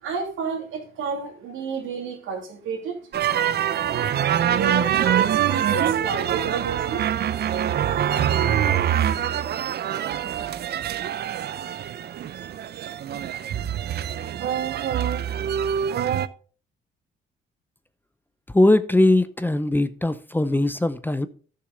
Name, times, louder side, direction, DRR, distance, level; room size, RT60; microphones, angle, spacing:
voice 1, 0.0-3.3 4.5-7.0, right 5 dB, 85° right, 2.7 m, -31 dB
sound 1, 3.1-16.3, right 10 dB, 55° right, 0.6 m, -24 dB
voice 2, 18.5-21.3, left 1 dB, 10° left, 0.6 m, -20 dB
12.0 x 6.8 x 3.8 m
cardioid pair, 90°, 20 cm